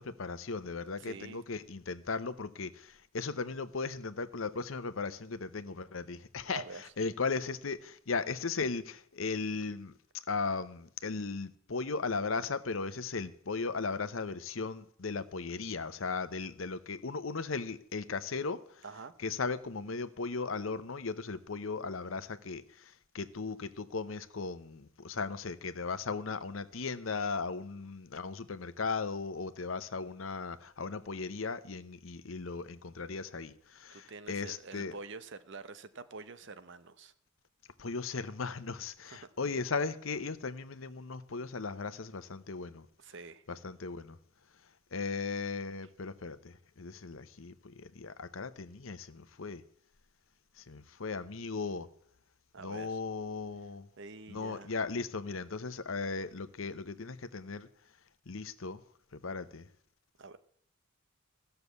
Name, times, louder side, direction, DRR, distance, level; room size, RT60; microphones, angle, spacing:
voice 1, 0.0-6.6 7.0-9.9 10.3-18.6 19.2-34.9 37.8-42.9 43.5-44.2 44.9-49.6 50.6-51.9 52.6-53.9 54.3-57.7 58.3-58.8 59.2-59.7, left 4 dB, 75° left, 0.9 m, -37 dB
voice 2, 1.0-1.4 6.5-6.8 18.8-19.1 33.9-37.1 39.0-39.3 43.0-43.4 52.5-53.0 54.0-54.7 60.2-60.4, right 4 dB, 65° right, 0.9 m, -47 dB
14.5 x 6.9 x 8.1 m
head